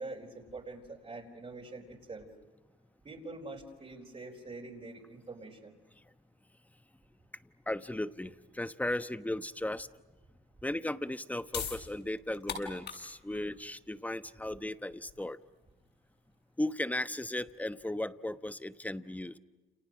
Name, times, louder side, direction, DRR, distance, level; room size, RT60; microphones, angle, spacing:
voice 1, 0.0-2.3 3.0-5.8, right 2 dB, 30° right, -2 dB, 4.5 m, -45 dB
voice 2, 7.7-9.9 10.6-15.4 16.6-19.4, left 1 dB, 5° left, 12 dB, 1.1 m, -36 dB
sound 1, 11.5-17.8, left 6 dB, 65° left, 7.9 m, -44 dB
30.0 x 29.0 x 6.3 m, 1.2 s
cardioid pair, 90°, 20 cm